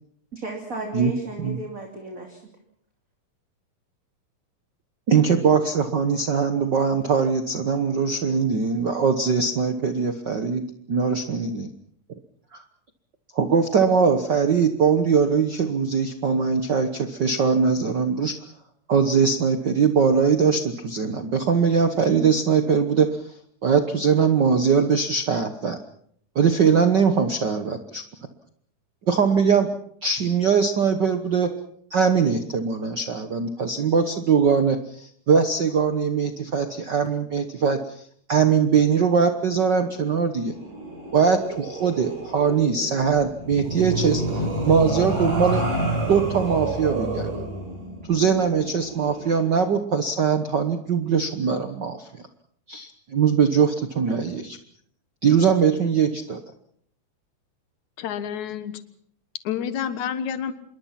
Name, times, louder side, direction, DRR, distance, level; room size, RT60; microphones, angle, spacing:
voice 1, 0.3-2.4, right 2 dB, 25° right, 1 dB, 3.0 m, -34 dB
voice 2, 5.1-10.6 10.9-11.7 12.5-12.6 13.3-18.3 18.9-23.1 23.6-25.8 26.3-28.0 29.1-29.7 30.0-31.5 31.9-38.0 38.3-40.5 41.1-45.6 46.1-47.3 48.1-52.2 52.7-54.6 55.2-56.4, right 6 dB, 60° right, 8 dB, 1.1 m, -21 dB
sound 1, 40.5-49.4, right 2 dB, 80° right, 6.6 m, -29 dB
voice 3, 58.0-58.8 59.5-60.5, left 8 dB, 65° left, 11 dB, 2.7 m, -29 dB
26.5 x 22.0 x 5.9 m, 0.65 s
omnidirectional pair, 3.7 m